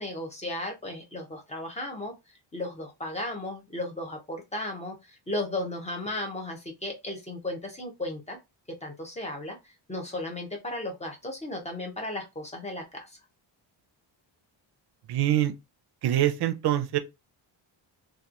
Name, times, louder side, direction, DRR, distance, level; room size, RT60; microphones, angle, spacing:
voice 1, 0.0-2.1 2.5-4.9 5.3-8.4 8.8-9.6 9.9-13.1, left 1 dB, 15° left, 0.5 m, -35 dB
voice 2, 15.1-15.5 16.0-17.0, right 12 dB, 55° right, 0.5 m, -24 dB
2.8 x 2.2 x 2.4 m
wide cardioid pair, 160°, 47 cm